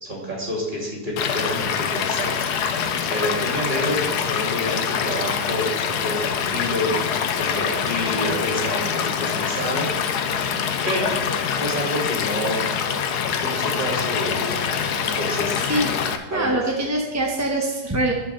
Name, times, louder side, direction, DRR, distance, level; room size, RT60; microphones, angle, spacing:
voice 1, 0.0-9.9 10.8-11.1 11.5-12.6 13.4-15.6 16.3-16.5, equal, 30° right, -3 dB, 3.0 m, -28 dB
Stream / Liquid, 1.2-16.2, left 7 dB, 80° left, 1.3 m, -25 dB
voice 2, 15.7-18.1, right 1 dB, 15° right, -1 dB, 0.8 m, -24 dB
11.5 x 5.3 x 6.7 m, 1.1 s
omnidirectional pair, 1.7 m